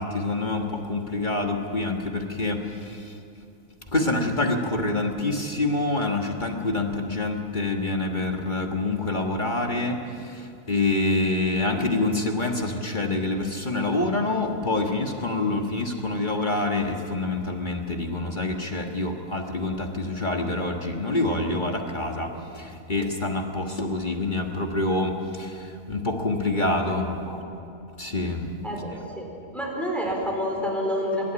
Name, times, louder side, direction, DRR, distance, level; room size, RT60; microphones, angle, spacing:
voice 1, 0.0-3.1 3.9-27.2 28.0-28.5, left 2 dB, 35° left, 2 dB, 1.6 m, -26 dB
voice 2, 26.5-27.5 28.6-29.3 29.5-31.3, equal, ahead, -1 dB, 4.0 m, -29 dB
24.5 x 12.0 x 9.9 m, 2.5 s
omnidirectional pair, 1.5 m